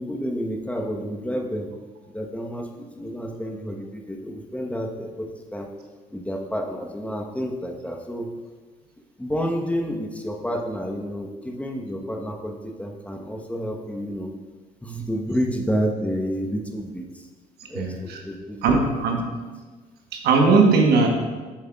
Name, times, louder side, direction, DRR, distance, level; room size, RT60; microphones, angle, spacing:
voice 1, 0.0-1.7 2.1-5.7 6.1-8.3 9.2-14.3 14.8-17.3 17.7-19.0, equal, 5° left, 1 dB, 1.0 m, -30 dB
voice 2, 17.7-18.2 18.6-19.3 20.1-21.1, right 4 dB, 70° right, 2 dB, 1.1 m, -19 dB
7.9 x 7.1 x 2.4 m, 1.3 s
supercardioid pair, 60°, 17 cm